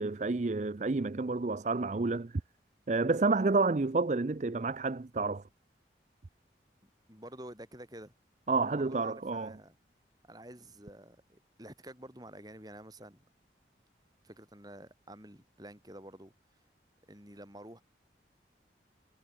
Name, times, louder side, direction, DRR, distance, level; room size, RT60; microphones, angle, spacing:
voice 1, 0.0-2.4 2.9-5.4 8.5-9.5, right 3 dB, 40° right, 0.5 m, -29 dB
voice 2, 7.1-8.1 8.6-9.8 10.3-13.2 14.2-16.3 17.1-17.8, right 1 dB, 20° right, 7.9 m, -49 dB
head